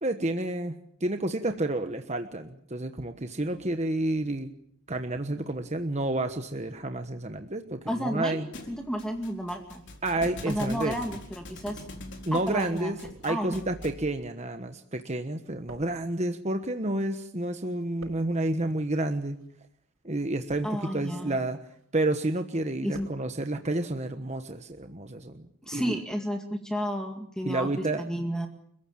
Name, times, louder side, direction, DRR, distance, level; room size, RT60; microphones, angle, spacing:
voice 1, 0.0-4.5 4.9-8.5 10.0-11.0 12.3-13.0 13.2-19.4 20.0-21.6 21.9-25.4 25.7-26.0 27.4-28.0, right 2 dB, 30° right, 7 dB, 1.2 m, -30 dB
voice 2, 7.9-8.4 8.7-9.8 10.5-11.8 12.3-12.9 13.2-13.6 20.6-21.4 22.8-23.1 25.7-28.5, equal, 5° left, 4 dB, 2.0 m, -32 dB
Thump thud, 8.5-14.1, left 2 dB, 55° left, 4.5 m, -44 dB
sound 1, 9.2-9.6 9.9-10.9 11.6-17.3 17.5-18.5 19.2-19.5 20.2-21.0 21.5-21.9 22.3-23.2 23.5-23.6, right 1 dB, 75° right, 5.9 m, -52 dB
29.5 x 15.5 x 8.7 m, 0.69 s
head